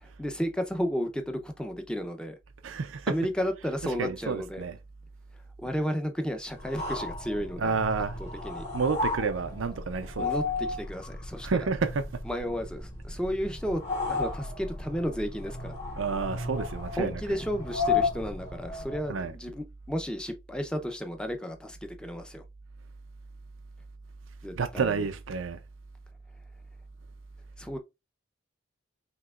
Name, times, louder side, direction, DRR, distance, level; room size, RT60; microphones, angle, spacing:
voice 1, 0.0-2.4 3.1-4.6 5.6-7.8 8.2-8.6 10.2-11.6 12.2-13.8 14.1-15.7 17.0-22.4 24.4-25.0 27.6-27.8, equal, 5° left, 0.6 m, -33 dB
voice 2, 2.6-3.3 3.8-4.8 7.6-8.2 8.7-10.4 11.4-12.1 16.0-17.4 19.1-19.4 24.6-25.6, right 5 dB, 90° right, 0.5 m, -30 dB
sound 1, 6.6-19.1, left 3 dB, 35° left, 2.3 m, -34 dB
5.8 x 3.0 x 2.4 m
head